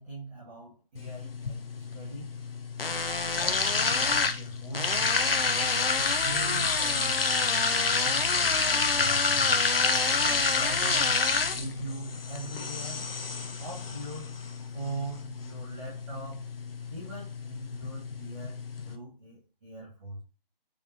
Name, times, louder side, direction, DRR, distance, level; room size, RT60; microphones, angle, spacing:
voice 1, 0.0-2.4 3.3-9.6 10.1-11.2 11.5-13.1 13.6-14.4 14.7-16.5 16.9-20.2, right 2 dB, 20° right, -6 dB, 1.5 m, -42 dB
sound 1, 1.0-19.0, left 4 dB, 75° left, 0.8 m, -28 dB
4.8 x 3.4 x 2.8 m, 0.33 s
figure-of-eight pair, 160°, 29 cm